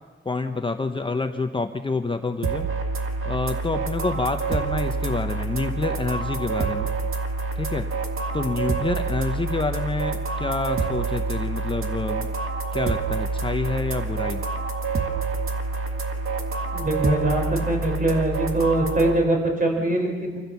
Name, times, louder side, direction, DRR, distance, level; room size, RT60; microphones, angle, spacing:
voice 1, 0.2-2.7 3.2-6.9 7.6-7.9 8.3-12.3 12.7-14.5, left 3 dB, 25° left, 6 dB, 0.9 m, -27 dB
sound 1, 2.4-19.1, right 4 dB, 90° right, 1.8 m, -27 dB
voice 2, 16.7-20.4, right 1 dB, 40° right, 1 dB, 4.7 m, -23 dB
26.5 x 15.0 x 7.0 m, 1.4 s
wide cardioid pair, 150°, 21 cm